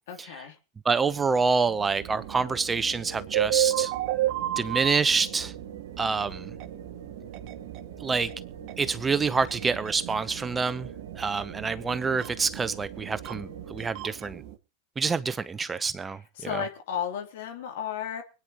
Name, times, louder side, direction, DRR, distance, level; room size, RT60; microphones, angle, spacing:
voice 1, 0.1-0.5 16.3-18.2, left 8 dB, 65° left, 3.1 m, -33 dB
voice 2, 0.8-3.9 4.6-5.5 6.0-6.5 8.0-8.3 8.8-10.9 11.2-14.4 15.0-16.2 16.5-16.6, right 4 dB, 20° right, 0.8 m, -27 dB
sound 1, 1.0-13.9, right 7 dB, 80° right, 1.4 m, -44 dB
sound 2, 2.0-14.6, right 14 dB, 50° right, 1.6 m, -34 dB
24.5 x 9.6 x 3.0 m
hypercardioid pair, 95°, 0 cm